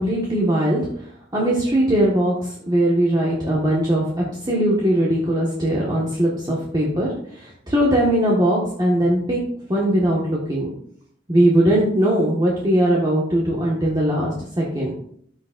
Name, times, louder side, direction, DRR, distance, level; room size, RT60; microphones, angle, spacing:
voice 1, 0.0-4.1 4.4-10.7 11.3-14.9, right 1 dB, 20° right, -5 dB, 1.5 m, -20 dB
13.0 x 6.4 x 2.5 m, 0.63 s
head